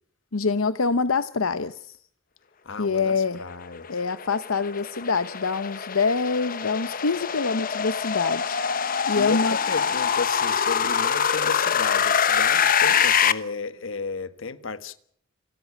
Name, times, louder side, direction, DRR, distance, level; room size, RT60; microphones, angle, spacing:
voice 1, 0.3-2.0 2.8-3.4 3.9-9.6, left 4 dB, 90° left, 0.9 m, -25 dB
voice 2, 2.6-4.0 9.1-15.0, left 4 dB, 70° left, 1.4 m, -33 dB
sound 1, 3.8-13.3, left 7 dB, 45° left, 1.0 m, -24 dB
28.5 x 13.5 x 8.6 m
head